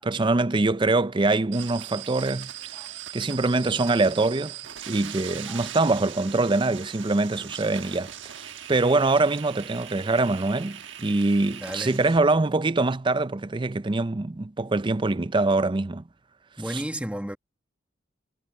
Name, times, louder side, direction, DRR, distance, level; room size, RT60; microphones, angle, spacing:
voice 1, 0.0-2.5 3.1-4.6 4.9-8.1 8.7-16.0 16.7-16.8, right 2 dB, 25° right, 0.5 m, -24 dB
sound 1, 1.5-12.2, right 10 dB, 70° right, 1.3 m, -40 dB
voice 2, 11.6-12.0 16.6-17.4, equal, 5° right, 1.8 m, -33 dB
head